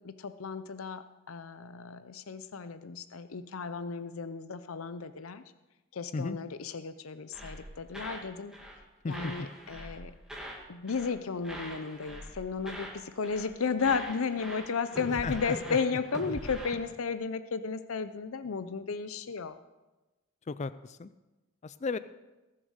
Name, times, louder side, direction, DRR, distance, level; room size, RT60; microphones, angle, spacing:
voice 1, 0.0-5.4 5.9-8.5 9.1-10.1 10.7-19.6, left 5 dB, 80° left, 12 dB, 0.6 m, -34 dB
sound 1, 7.3-8.3 8.5-8.8 9.1-10.6 10.9-11.2 11.4-13.0 13.2-13.5 13.8-16.7, equal, 5° right, 2.2 m, -43 dB
voice 2, 15.2-15.5 20.5-21.1 21.6-22.0, left 4 dB, 35° left, 14 dB, 0.4 m, -34 dB
19.0 x 7.5 x 6.5 m, 1.1 s
head